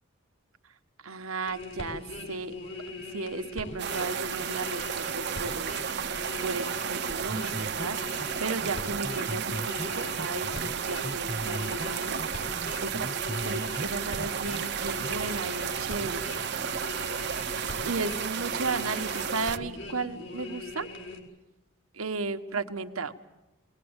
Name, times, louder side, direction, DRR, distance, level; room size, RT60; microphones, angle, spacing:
voice 1, 1.0-2.5 3.1-5.9 6.4-13.1 13.4-16.5 17.8-20.9 21.9-23.1, right 3 dB, 90° right, 7 dB, 1.4 m, -35 dB
sound 1, 1.4-21.2, left 2 dB, 60° left, 4.3 m, -41 dB
sound 2, 3.8-19.6, right 8 dB, 55° right, 0.8 m, -33 dB
sound 3, 7.3-7.9 8.2-8.3 8.6-8.7 9.0-10.7 11.0-11.9 12.2-13.9 14.2-14.6 15.0-15.1, right 1 dB, 15° right, 1.1 m, -37 dB
20.5 x 19.5 x 8.9 m, 1.0 s
head